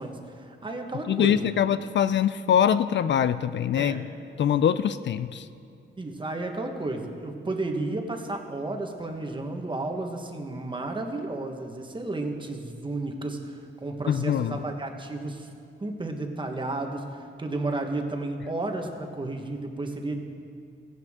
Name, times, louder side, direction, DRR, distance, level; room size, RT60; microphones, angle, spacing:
voice 1, 0.0-1.5 3.8-4.0 6.0-15.5 15.8-20.2, right 2 dB, 25° right, 3 dB, 1.3 m, -32 dB
voice 2, 1.1-4.0 4.4-5.5 14.1-14.6, left 9 dB, 65° left, 13 dB, 0.4 m, -23 dB
16.0 x 16.0 x 3.7 m, 2.5 s
wide cardioid pair, 140°, 21 cm